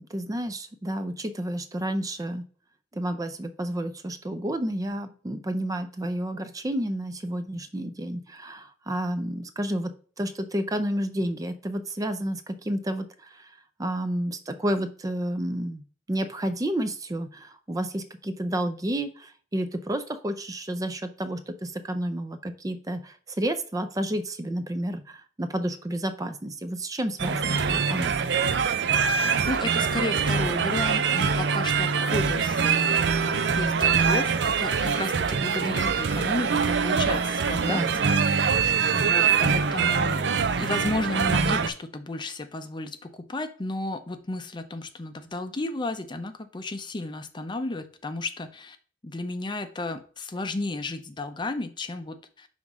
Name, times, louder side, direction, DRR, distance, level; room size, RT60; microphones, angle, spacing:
voice 1, 0.0-2.4 2.9-15.8 16.1-28.3 37.7-37.9, right 1 dB, 20° right, 9 dB, 0.5 m, -30 dB
sound 1, 27.2-41.7, right 6 dB, 70° right, 0.5 m, -24 dB
voice 2, 29.1-38.3 38.9-40.3 40.6-48.8 49.0-52.5, left 2 dB, 25° left, 9 dB, 0.5 m, -33 dB
5.6 x 3.5 x 4.8 m, 0.42 s
head